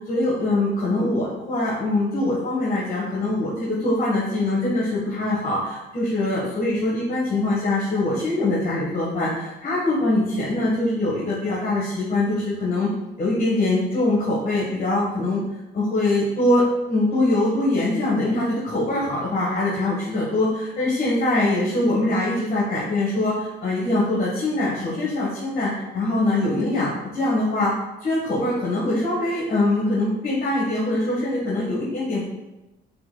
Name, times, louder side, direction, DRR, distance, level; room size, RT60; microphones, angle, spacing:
voice 1, 0.1-12.9 13.2-15.4 15.7-16.6 16.9-27.7 28.0-32.2, left 2 dB, 45° left, -7 dB, 1.4 m, -23 dB
5.6 x 4.0 x 2.3 m, 0.99 s
cardioid pair, 90°, 20 cm